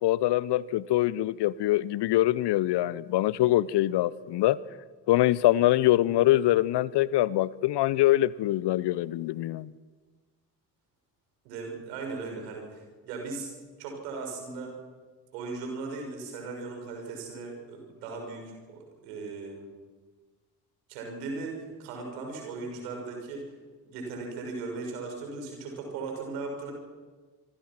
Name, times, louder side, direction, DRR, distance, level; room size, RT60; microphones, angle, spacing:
voice 1, 0.0-4.6 5.1-9.7, left 15 dB, 55° left, 0.9 m, -24 dB
voice 2, 11.4-13.5 13.8-14.8 15.3-19.7 20.9-23.5 23.8-26.7, right 3 dB, 75° right, 6.2 m, -38 dB
27.0 x 24.0 x 6.1 m
figure-of-eight pair, 40°, 48 cm